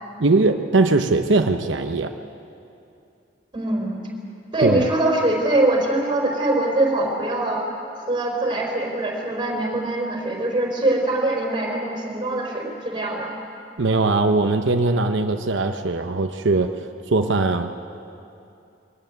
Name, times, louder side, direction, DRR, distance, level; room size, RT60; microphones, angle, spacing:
voice 1, 0.2-2.1 4.6-4.9 13.8-16.7 17.1-17.7, right 3 dB, 90° right, 5 dB, 0.9 m, -20 dB
voice 2, 3.5-4.0 4.5-7.6 8.0-13.3, right 2 dB, 25° right, -1 dB, 4.1 m, -23 dB
22.5 x 14.5 x 9.4 m, 2.6 s
head